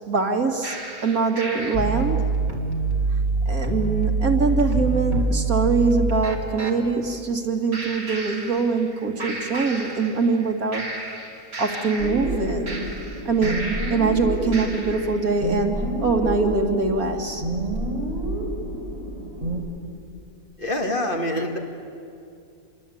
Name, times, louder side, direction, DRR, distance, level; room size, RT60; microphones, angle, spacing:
voice 1, 0.1-0.8 1.0-2.2 3.5-10.8 11.6-12.8 13.2-13.6 13.9-17.4, right 4 dB, 75° right, 3 dB, 2.6 m, -23 dB
sound 1, 0.6-6.8 7.7-8.9 9.2-10.4 10.7-14.1 14.5-15.2, right 3 dB, 45° right, 3.0 m, -27 dB
sound 2, 12.0-19.6, right 1 dB, 25° right, 4.2 m, -29 dB
voice 2, 20.6-21.6, left 1 dB, 35° left, 2 dB, 2.3 m, -25 dB
27.5 x 22.5 x 8.6 m, 2.5 s
omnidirectional pair, 1.5 m